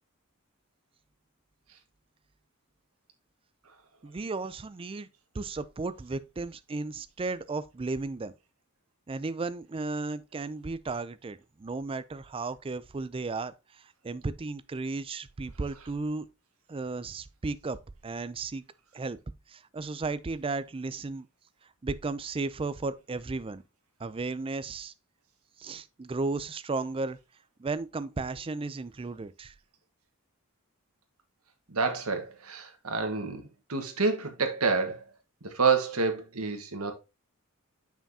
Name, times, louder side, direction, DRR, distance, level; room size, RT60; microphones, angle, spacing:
voice 1, 4.0-5.1 5.3-8.3 9.1-16.3 16.7-18.6 18.9-19.2 19.5-21.3 21.8-23.6 24.0-24.9 25.6-27.2 27.6-29.5, right 3 dB, 25° right, 0.4 m, -34 dB
voice 2, 31.7-33.4 33.7-35.0 35.5-36.9, right 4 dB, 80° right, 1.4 m, -28 dB
7.1 x 5.7 x 2.8 m
head